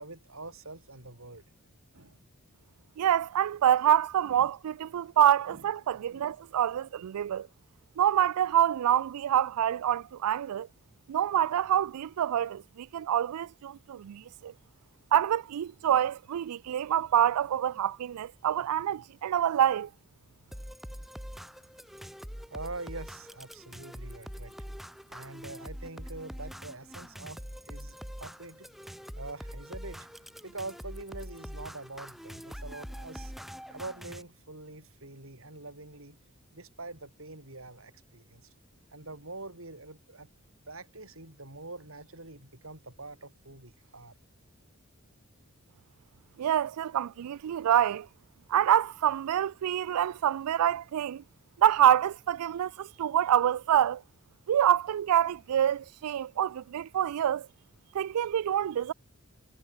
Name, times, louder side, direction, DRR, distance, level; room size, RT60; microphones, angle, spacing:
voice 1, 0.0-1.4 1.9-2.2 4.2-4.5 5.5-5.7 6.1-6.4 22.5-24.5 25.1-28.7 29.1-30.1 30.4-33.3 33.7-36.2 36.5-38.5 38.9-40.3 40.7-44.1, right 2 dB, 65° right, 4.9 m, -44 dB
voice 2, 3.0-7.5 8.0-10.7 11.1-14.5 15.1-19.9 46.4-48.1 48.5-51.2 51.6-54.0 54.5-57.5 57.9-58.9, right 10 dB, 90° right, 0.3 m, -26 dB
sound 1, 20.5-34.2, equal, ahead, 1.1 m, -44 dB
head